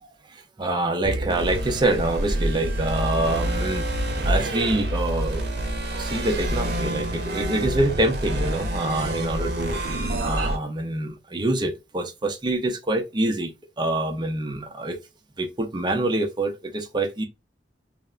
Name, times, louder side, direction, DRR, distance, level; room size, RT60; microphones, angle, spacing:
voice 1, 0.0-3.9 4.2-5.4 6.0-9.8 10.2-15.0 15.4-17.2, right 2 dB, 25° right, 0.6 m, -26 dB
sound 1, 1.0-10.6, right 1 dB, 65° right, 0.7 m, -27 dB
3.3 x 2.1 x 2.4 m
head